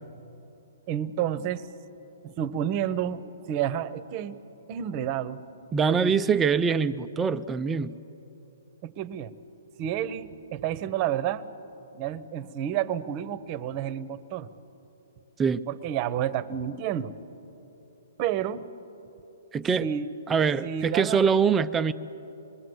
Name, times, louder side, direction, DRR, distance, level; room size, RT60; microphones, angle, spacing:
voice 1, 0.9-1.6 2.2-3.2 3.5-4.4 4.7-5.4 5.9-6.1 8.8-9.3 9.8-11.4 11.9-14.5 15.7-17.1 18.2-18.7 19.8-20.1 20.6-21.2, right 10 dB, 35° right, 16 dB, 0.9 m, -30 dB
voice 2, 5.7-7.9 15.4-15.6 19.5-19.8 20.3-21.9, right 6 dB, 15° right, 11 dB, 0.4 m, -23 dB
26.0 x 20.5 x 8.0 m, 3.0 s
hypercardioid pair, 140°, 0 cm